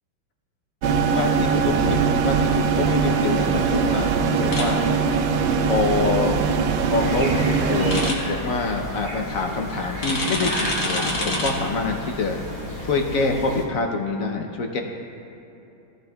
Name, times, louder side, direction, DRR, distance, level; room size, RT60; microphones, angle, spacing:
sound 1, 0.8-8.1, right 5 dB, 75° right, 1.3 m, -21 dB
voice 1, 0.9-4.9 5.6-6.4 6.9-7.3 7.6-12.4 12.8-14.8, left 3 dB, 70° left, 2 dB, 0.8 m, -26 dB
sound 2, 4.5-4.6 7.9-8.1 10.0-11.5, left 1 dB, 45° left, 1.8 m, -26 dB
sound 3, 7.0-13.6, left 1 dB, 25° left, 0.9 m, -33 dB
16.5 x 11.5 x 2.3 m, 2.9 s
omnidirectional pair, 2.2 m